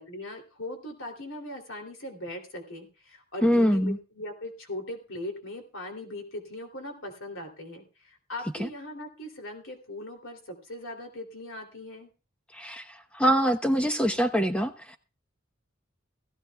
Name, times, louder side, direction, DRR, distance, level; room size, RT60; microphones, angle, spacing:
voice 1, 0.0-12.1, left 1 dB, 70° left, 3 dB, 3.0 m, -40 dB
voice 2, 3.4-4.0 8.6-8.7 12.5-12.8 13.1-15.0, equal, 5° left, 7 dB, 1.0 m, -24 dB
18.0 x 15.0 x 2.3 m, 0.32 s
head